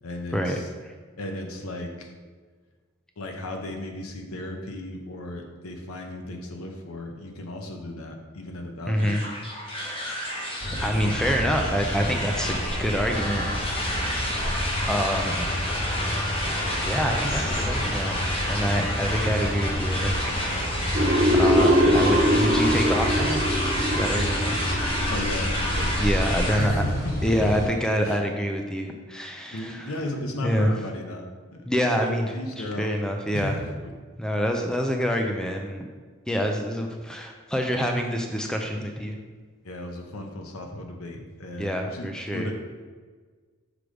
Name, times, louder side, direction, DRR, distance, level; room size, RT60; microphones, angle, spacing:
voice 1, 0.0-0.7 1.2-2.1 3.2-9.2 25.1-26.0 26.6-27.5 28.0-28.2 29.5-31.6 32.0-32.9 33.3-33.9 39.6-42.5, left 1 dB, 85° left, 3 dB, 0.8 m, -35 dB
voice 2, 8.9-9.2 10.8-13.4 13.7-14.6 14.8-15.7 16.8-18.2 18.5-20.1 20.4-20.9 21.4-23.4 23.9-24.6 26.0-26.8 27.2-29.9 30.4-30.7 31.7-33.6 34.2-35.9 36.3-39.2 41.6-42.5, equal, 5° left, 3 dB, 0.4 m, -27 dB
sound 1, 9.0-26.7, left 1 dB, 25° left, 1.0 m, -30 dB
sound 2, 10.6-27.7, equal, 40° left, 1.7 m, -30 dB
sound 3, 20.9-25.7, equal, 40° right, 0.6 m, -22 dB
6.1 x 3.3 x 4.9 m, 1.5 s
head